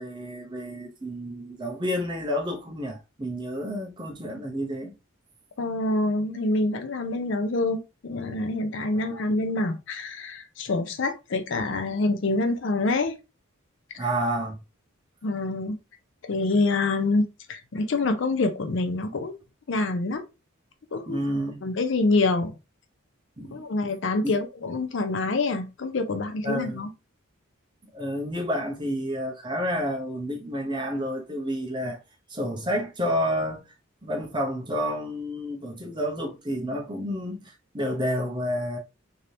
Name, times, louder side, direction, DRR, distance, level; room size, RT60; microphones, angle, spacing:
voice 1, 0.0-4.9 8.9-9.2 14.0-14.6 21.1-21.6 23.4-23.6 24.2-24.3 26.4-26.8 27.9-32.0 32.3-33.6 34.0-38.8, equal, 20° right, 0.6 m, -30 dB
voice 2, 5.6-13.2 13.9-14.0 15.2-15.8 16.2-19.4 19.7-20.2 20.9-21.2 21.6-22.5 23.5-26.9, left 2 dB, 60° left, 0.5 m, -26 dB
3.3 x 2.7 x 2.6 m
head